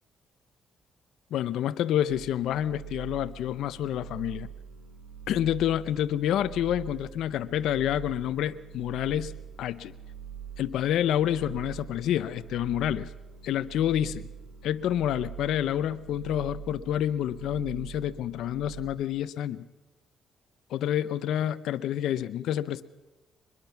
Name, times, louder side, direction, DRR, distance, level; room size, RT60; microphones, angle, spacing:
voice 1, 1.3-4.5 5.3-9.9 10.6-13.1 13.4-14.3 14.6-19.6 20.7-22.8, left 11 dB, 80° left, 13 dB, 0.7 m, -28 dB
sound 1, 2.1-18.9, right 8 dB, 75° right, 5.9 m, -44 dB
23.5 x 21.5 x 5.8 m, 1.1 s
cardioid pair, 90°, 0 cm